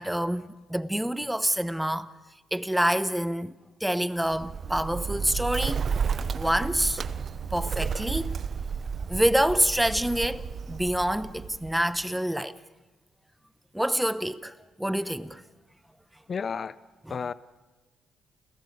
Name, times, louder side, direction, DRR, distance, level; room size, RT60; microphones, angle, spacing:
voice 1, 0.0-2.1 2.5-3.5 3.8-5.8 6.3-7.0 7.5-8.4 9.1-12.6 13.7-15.4, equal, 5° right, 0.9 m, -27 dB
Bird, 4.2-12.0, right 6 dB, 50° right, 0.9 m, -32 dB
voice 2, 16.3-16.8 17.1-17.3, left 6 dB, 45° left, 0.6 m, -31 dB
28.5 x 15.0 x 8.1 m
cardioid pair, 90°, 0 cm